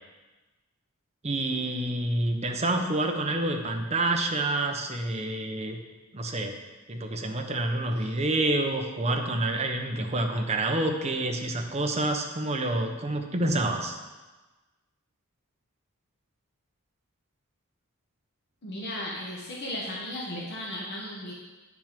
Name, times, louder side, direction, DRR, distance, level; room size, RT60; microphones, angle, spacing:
voice 1, 1.2-5.8 6.1-6.5 6.9-14.0, right 2 dB, 30° right, 3 dB, 0.9 m, -28 dB
voice 2, 18.6-21.3, left 1 dB, 50° left, -4 dB, 1.3 m, -35 dB
9.8 x 6.1 x 5.2 m, 1.2 s
head